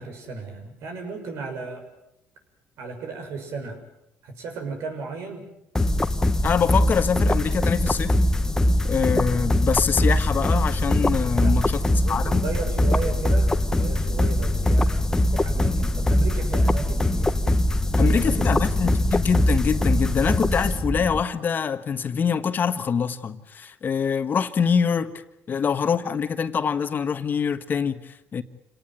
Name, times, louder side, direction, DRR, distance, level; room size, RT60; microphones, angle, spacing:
voice 1, 0.0-1.8 2.8-3.8 4.2-5.4 11.4-15.1 15.3-17.5 18.0-18.7 19.0-19.1, right 4 dB, 75° right, 6.7 m, -35 dB
sound 1, 5.8-21.2, left 1 dB, 10° left, 1.3 m, -22 dB
voice 2, 6.4-8.2 8.8-11.8 12.1-12.4 18.0-25.1 25.5-28.4, left 6 dB, 40° left, 1.5 m, -24 dB
27.5 x 18.5 x 9.4 m
cardioid pair, 100°, 5 cm